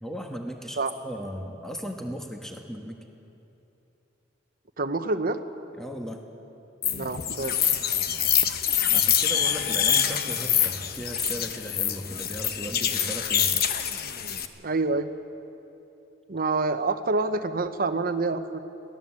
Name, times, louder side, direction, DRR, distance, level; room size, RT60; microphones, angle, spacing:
voice 1, 0.0-3.0 5.8-6.2 8.9-13.5, equal, ahead, 2 dB, 1.4 m, -36 dB
voice 2, 4.8-5.4 7.0-7.6 14.6-15.1 16.3-18.7, right 3 dB, 50° right, 9 dB, 0.9 m, -27 dB
sound 1, 6.8-14.5, left 9 dB, 55° left, 1.0 m, -25 dB
22.5 x 17.0 x 7.5 m, 2.9 s
head